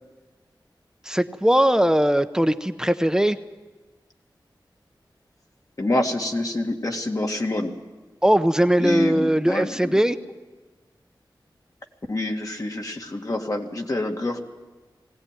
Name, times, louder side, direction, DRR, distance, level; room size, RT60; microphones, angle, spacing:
voice 1, 1.0-3.4 8.2-10.2, equal, 10° right, 10 dB, 0.8 m, -20 dB
voice 2, 5.8-7.7 8.8-9.9 12.1-14.4, left 1 dB, 45° left, 2 dB, 2.1 m, -27 dB
20.0 x 17.5 x 9.1 m, 1.3 s
wide cardioid pair, 75°, 8 cm